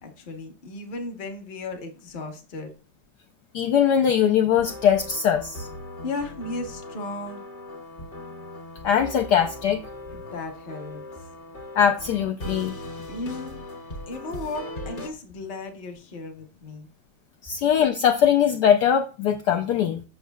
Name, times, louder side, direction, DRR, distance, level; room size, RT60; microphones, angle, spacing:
voice 1, 0.0-2.7 6.0-7.4 10.3-11.3 13.1-13.6 14.1-16.9, left 2 dB, 35° left, 0.9 m, -35 dB
voice 2, 3.5-5.7 8.8-9.8 11.8-12.8 17.4-20.0, left 8 dB, 70° left, 1.0 m, -21 dB
sound 1, 4.5-15.1, left 1 dB, 55° left, 1.6 m, -39 dB
7.2 x 6.3 x 2.3 m
omnidirectional pair, 2.1 m